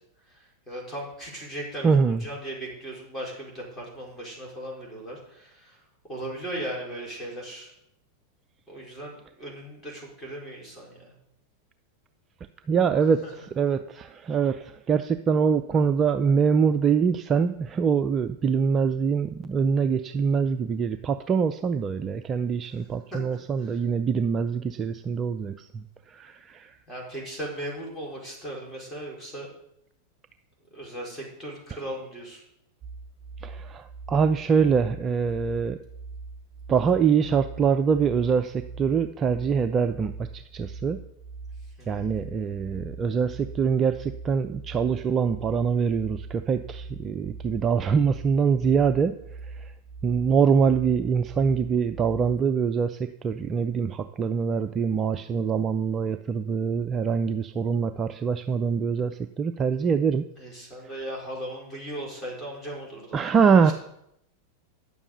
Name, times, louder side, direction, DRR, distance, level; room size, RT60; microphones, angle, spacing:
voice 1, 0.3-5.8 6.1-7.7 8.7-11.1 13.2-13.3 22.6-22.8 23.1-23.8 26.9-29.5 30.7-32.4 41.8-42.1 60.4-63.2 63.6-63.7, right 1 dB, 10° left, -3 dB, 4.5 m, -37 dB
voice 2, 1.8-2.2 12.7-13.2 13.6-26.7 33.4-35.8 36.7-41.0 41.9-49.1 49.6-49.7 50.0-60.3 63.1-63.7, right 6 dB, 25° right, 10 dB, 0.4 m, -24 dB
sound 1, 32.8-52.4, right 4 dB, 10° right, 5.4 m, -41 dB
9.8 x 7.1 x 6.7 m, 0.77 s
figure-of-eight pair, 90°, 0 cm